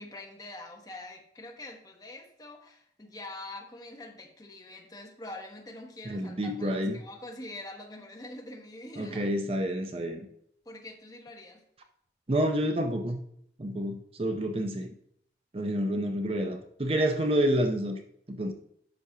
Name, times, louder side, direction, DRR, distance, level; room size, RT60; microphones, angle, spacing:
voice 1, 0.0-9.3 10.6-11.6, left 2 dB, 20° left, 1 dB, 1.1 m, -44 dB
voice 2, 6.1-7.0 9.0-10.3 12.3-13.2 13.6-14.9 15.5-18.0 18.3-18.5, equal, 35° right, 4 dB, 0.6 m, -28 dB
10.0 x 6.1 x 2.8 m, 0.68 s
head